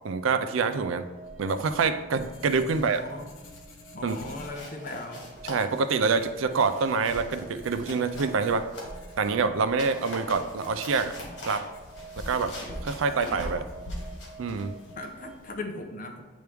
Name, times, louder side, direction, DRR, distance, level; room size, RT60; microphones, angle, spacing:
voice 1, 0.0-1.1 1.4-3.1 4.0-4.2 5.4-8.7 9.2-11.1 11.5-11.7 12.2-12.6 12.8-13.6 14.4-14.7, right 4 dB, 75° right, 11 dB, 0.4 m, -26 dB
sound 1, 0.6-15.4, right 4 dB, 5° right, 0.5 m, -49 dB
Writing, 0.8-15.6, equal, 85° left, 1.0 m, -45 dB
sound 2, 2.7-3.2 3.5-3.7 4.1-9.2 9.6-15.5, left 1 dB, 60° left, 1.8 m, -44 dB
voice 2, 2.7-3.2 3.9-5.3 15.0-16.2, left 2 dB, 40° left, 3 dB, 0.7 m, -38 dB
9.2 x 3.1 x 3.4 m, 1.3 s
head